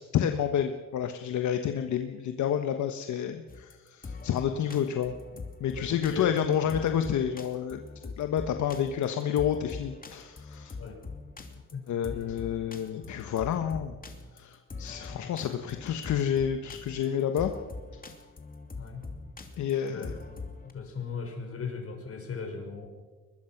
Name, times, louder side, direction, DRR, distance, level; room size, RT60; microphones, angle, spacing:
voice 1, 0.0-5.1 5.6-10.7 11.9-13.9 14.3-17.5 19.6-20.1, left 9 dB, 70° left, 6 dB, 1.3 m, -29 dB
sound 1, 3.5-20.7, left 3 dB, 30° left, 2.7 m, -43 dB
voice 2, 5.7-6.3 10.7-11.0 11.7-11.8 15.1-15.3 18.8-19.0 19.9-20.1 20.6-22.9, left 5 dB, 50° left, 3 dB, 6.0 m, -38 dB
22.5 x 21.5 x 6.0 m, 1.3 s
cardioid pair, 90°, 30 cm